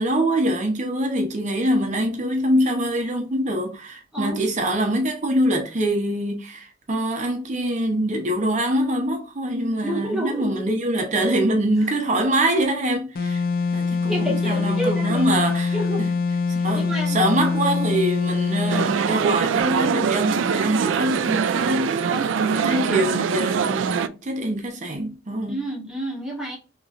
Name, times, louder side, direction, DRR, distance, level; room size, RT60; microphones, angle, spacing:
voice 1, 0.0-13.4 13.7-16.1 16.5-22.1 22.4-25.6, right 1 dB, 40° right, 0.7 m, -24 dB
voice 2, 9.8-10.6 11.8-12.0 14.1-15.3 15.7-16.1 16.6-17.2 22.0-23.0 25.5-26.6, right 1 dB, 5° right, 1.6 m, -30 dB
sound 1, 13.1-18.9, left 4 dB, 50° left, 0.5 m, -24 dB
sound 2, 18.7-24.1, right 6 dB, 80° right, 0.3 m, -23 dB
3.8 x 3.0 x 2.5 m
head